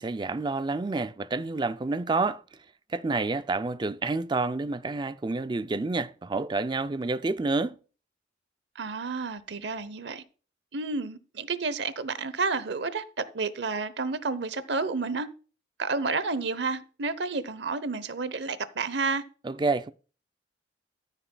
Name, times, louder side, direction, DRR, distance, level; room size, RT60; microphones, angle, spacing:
voice 1, 0.0-2.4 2.9-7.7 19.4-19.9, right 3 dB, 25° right, 0.4 m, -29 dB
voice 2, 8.8-10.2 10.7-13.0 13.3-15.3 15.8-19.2, right 4 dB, 65° right, 0.8 m, -30 dB
13.5 x 9.0 x 2.3 m
head